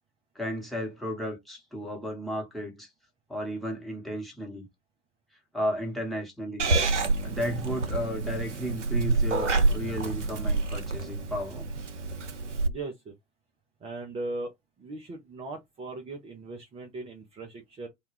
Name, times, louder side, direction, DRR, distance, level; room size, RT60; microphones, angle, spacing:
voice 1, 0.3-2.9 3.3-4.6 5.5-6.7 7.2-11.7, equal, ahead, 1.1 m, -34 dB
Purr / Meow, 6.6-12.7, right 3 dB, 85° right, 0.5 m, -28 dB
voice 2, 12.6-13.1 13.8-14.5 14.8-17.9, right 2 dB, 15° right, 0.5 m, -38 dB
2.3 x 2.2 x 3.2 m
figure-of-eight pair, 80°, 35 cm